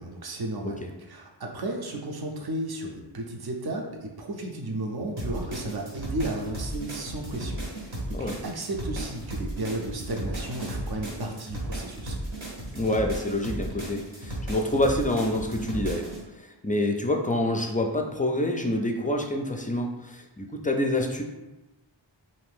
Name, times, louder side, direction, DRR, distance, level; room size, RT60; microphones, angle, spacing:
voice 1, 0.0-0.8 1.1-12.2, right 1 dB, 55° right, 2 dB, 0.6 m, -34 dB
sound 1, 5.2-16.2, right 1 dB, 75° right, 1.0 m, -35 dB
voice 2, 8.1-8.4 12.7-16.1 16.4-21.2, left 1 dB, 20° left, 3 dB, 0.4 m, -27 dB
2.7 x 2.5 x 3.5 m, 1.0 s
wide cardioid pair, 45°, 46 cm